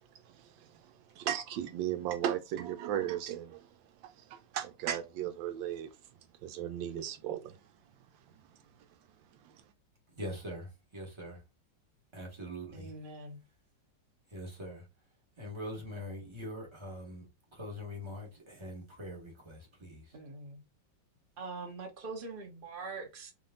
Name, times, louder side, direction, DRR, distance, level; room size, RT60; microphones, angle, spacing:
voice 1, 0.3-3.7 4.2-5.9 6.4-7.6 9.4-9.6, right 10 dB, 85° right, 1.3 m, -36 dB
voice 2, 10.1-11.4 12.1-12.9 14.3-14.8 15.4-17.3 17.5-20.2, equal, 15° right, 1.6 m, -43 dB
voice 3, 12.7-13.4 20.1-20.6 21.4-23.3, right 3 dB, 35° right, 1.1 m, -43 dB
3.6 x 3.1 x 3.7 m
omnidirectional pair, 2.0 m